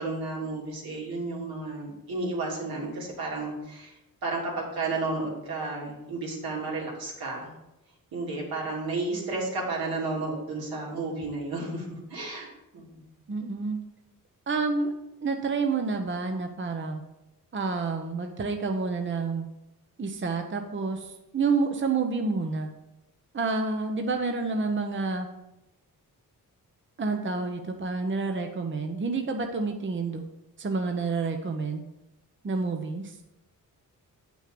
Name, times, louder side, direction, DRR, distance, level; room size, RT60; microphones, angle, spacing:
voice 1, 0.0-3.9 4.2-7.5 8.1-12.5 12.7-13.0, right 3 dB, 80° right, -4 dB, 3.2 m, -32 dB
voice 2, 13.3-13.8 14.5-14.9 15.2-17.0 17.5-19.5 20.0-22.7 23.3-25.3 27.0-30.2 30.6-31.8 32.4-33.2, right 4 dB, 35° right, 4 dB, 0.9 m, -29 dB
8.4 x 6.2 x 5.3 m, 0.93 s
cardioid pair, 90°, 36 cm